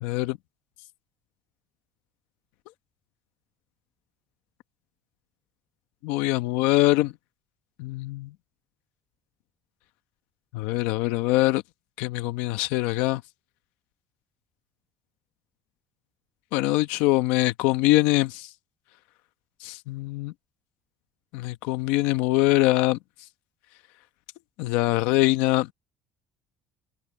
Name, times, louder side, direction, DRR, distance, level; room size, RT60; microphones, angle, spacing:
voice 1, 0.0-0.4 6.0-7.1 7.8-8.3 10.5-11.6 12.0-13.2 16.5-18.5 19.6-20.3 21.3-23.0 24.6-25.7, left 18 dB, 85° left, 1.0 m, -23 dB
cardioid pair, 145°, 3 cm